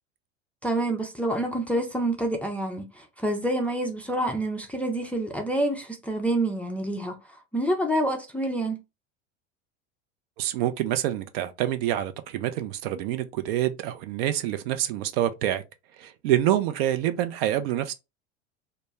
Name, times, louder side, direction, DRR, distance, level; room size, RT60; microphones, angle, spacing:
voice 1, 0.6-7.2 7.5-8.8, right 1 dB, 5° left, 0.4 m, -27 dB
voice 2, 10.4-15.6 16.0-17.9, right 12 dB, 55° right, 0.5 m, -26 dB
2.1 x 2.1 x 3.3 m
hypercardioid pair, 80°, 36 cm